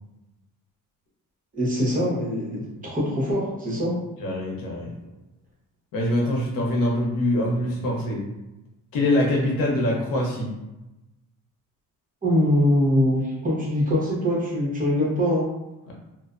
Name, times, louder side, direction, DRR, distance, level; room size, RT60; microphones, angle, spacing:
voice 1, 1.5-3.9 12.2-15.5, equal, 25° right, -5 dB, 0.9 m, -23 dB
voice 2, 4.2-4.9 5.9-8.2 8.9-10.5 15.9-16.0, left 1 dB, 90° left, -2 dB, 0.7 m, -24 dB
2.5 x 2.1 x 2.4 m, 0.99 s
cardioid pair, 110°, 34 cm